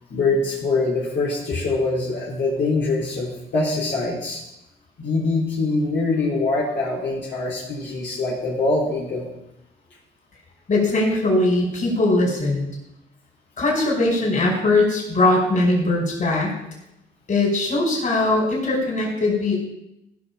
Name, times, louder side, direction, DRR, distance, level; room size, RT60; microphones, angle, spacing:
voice 1, 0.1-4.4 5.0-9.3, left 3 dB, 65° left, -6 dB, 3.7 m, -23 dB
voice 2, 10.7-12.7 13.6-16.6 17.3-19.6, left 2 dB, 40° left, -2 dB, 5.3 m, -20 dB
15.5 x 6.0 x 5.5 m, 0.86 s
cardioid pair, 90°, 20 cm